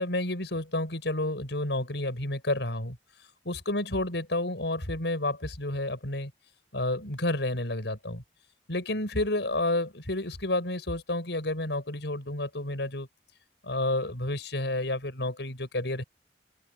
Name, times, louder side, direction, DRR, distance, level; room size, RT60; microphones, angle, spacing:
voice 1, 0.0-3.0 3.5-6.3 6.7-8.2 8.7-13.1 13.6-16.0, left 1 dB, 85° left, 5.2 m, -30 dB
open air
head